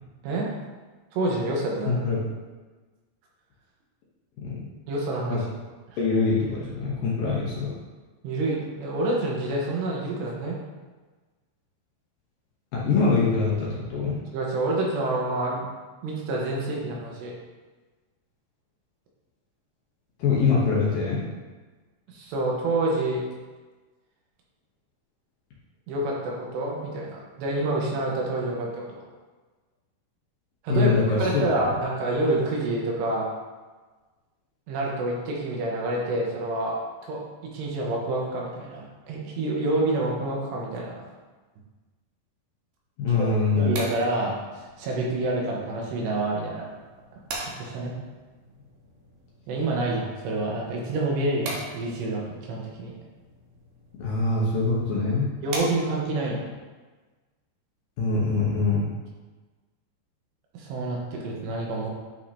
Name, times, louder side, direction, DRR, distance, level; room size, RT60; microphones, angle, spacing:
voice 1, 1.1-2.0 4.9-5.4 5.9-6.0 8.2-10.6 14.3-15.7 16.0-17.3 22.1-23.2 25.9-29.0 30.6-30.9 31.2-33.3 34.7-36.8 37.0-41.1 43.1-43.3 43.6-46.7 47.1-47.2 47.6-48.0 49.5-52.9 55.4-56.5 60.5-61.9, right 2 dB, 85° right, -2 dB, 3.3 m, -28 dB
voice 2, 1.9-2.2 4.4-4.6 5.3-5.4 6.0-7.7 12.7-14.2 20.2-21.2 30.7-31.7 43.0-43.8 54.0-55.3 58.0-58.9, left 4 dB, 70° left, -5 dB, 2.3 m, -24 dB
sound 1, 43.4-56.2, right 2 dB, 65° right, 2.2 m, -42 dB
10.0 x 5.3 x 2.9 m, 1.3 s
omnidirectional pair, 4.9 m